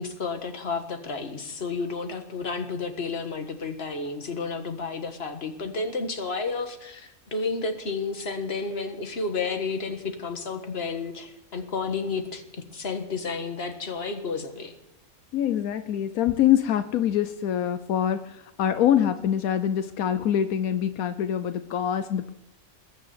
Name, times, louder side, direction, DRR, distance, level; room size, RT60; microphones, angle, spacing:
voice 1, 0.0-14.7, left 4 dB, 45° left, 5 dB, 1.8 m, -31 dB
voice 2, 15.3-22.3, left 10 dB, 80° left, 10 dB, 1.2 m, -24 dB
20.5 x 6.9 x 9.4 m, 0.86 s
omnidirectional pair, 1.5 m